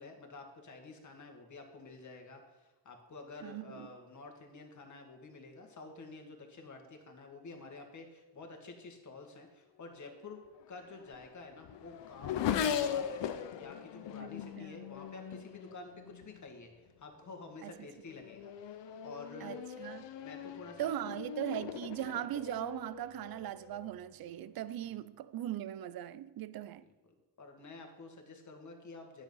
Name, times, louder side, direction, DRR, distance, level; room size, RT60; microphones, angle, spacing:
voice 1, 0.0-10.4 10.7-13.3 13.5-19.6 20.2-21.2 24.8-25.0 27.4-29.2, left 3 dB, 40° left, 1.8 m, -50 dB
voice 2, 3.4-3.9 12.6-12.8 14.2-14.3 14.6-14.7 17.6-17.9 19.4-20.1 20.8-26.9, right 12 dB, 60° right, 0.5 m, -39 dB
Race car auto racing / Accelerating revving vroom, 10.6-16.4 17.3-17.6 18.1-24.0, left 9 dB, 80° left, 0.8 m, -39 dB
10.0 x 7.2 x 5.5 m
cardioid pair, 105°, 43 cm